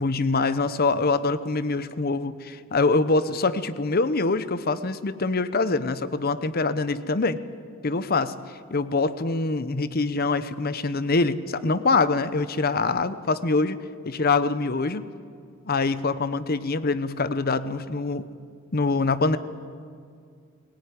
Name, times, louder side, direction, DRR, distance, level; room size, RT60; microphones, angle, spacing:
voice 1, 0.0-7.4 7.8-8.3 8.7-13.8 14.0-15.0 15.7-18.3 18.7-19.4, left 3 dB, 45° left, 14 dB, 0.8 m, -24 dB
21.5 x 18.0 x 9.7 m, 2.2 s
head